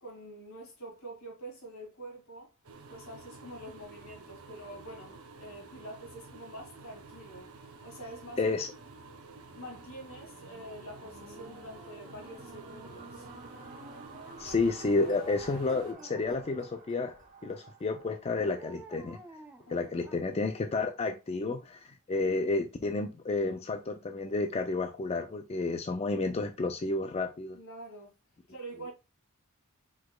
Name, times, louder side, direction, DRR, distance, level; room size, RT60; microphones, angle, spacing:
voice 1, 0.0-2.5 2.9-8.6 9.6-13.3 19.7-20.2 27.5-28.1 28.5-28.9, right 1 dB, 75° left, 2.3 m, -46 dB
sound 1, 2.6-15.9, right 3 dB, 90° right, 0.9 m, -51 dB
voice 2, 8.4-8.7 14.4-17.1 17.4-19.2 19.7-27.6, left 3 dB, 30° left, 0.4 m, -31 dB
sound 2, 9.3-19.6 20.2-20.3, right 2 dB, 40° right, 1.4 m, -52 dB
Dog, 11.2-13.3 15.0-16.7 18.4-20.5 20.9-21.0, right 1 dB, 10° right, 0.6 m, -52 dB
4.8 x 4.1 x 2.3 m
head